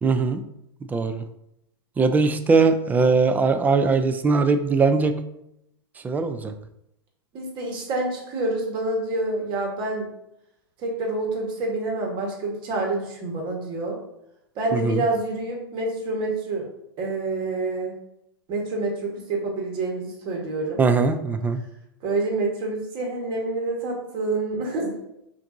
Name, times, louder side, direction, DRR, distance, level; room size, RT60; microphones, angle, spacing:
voice 1, 0.0-0.4 0.9-1.2 2.0-5.1 6.0-6.5 14.7-15.0 20.8-21.6, right 4 dB, 15° right, 8 dB, 0.3 m, -20 dB
voice 2, 7.3-10.1 10.8-14.0 14.5-16.6 17.0-17.9 18.5-20.8 22.0-24.9, right 2 dB, 40° right, 0 dB, 1.4 m, -27 dB
5.7 x 2.6 x 2.6 m, 0.80 s
hypercardioid pair, 100°, 13 cm